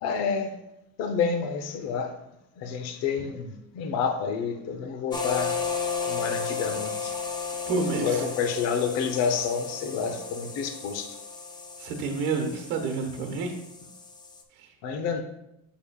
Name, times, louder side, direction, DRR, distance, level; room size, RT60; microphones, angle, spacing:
voice 1, 0.0-0.6 1.0-2.1 2.6-5.5 6.0-7.1 8.0-11.2 14.8-15.2, left 6 dB, 50° left, 5 dB, 0.8 m, -29 dB
sound 1, 5.1-14.4, left 5 dB, 15° left, 0.4 m, -34 dB
voice 2, 7.6-8.3 11.8-13.6 14.5-14.7, right 4 dB, 65° right, 4 dB, 1.1 m, -29 dB
7.0 x 6.9 x 2.3 m, 0.85 s
cardioid pair, 155°, 33 cm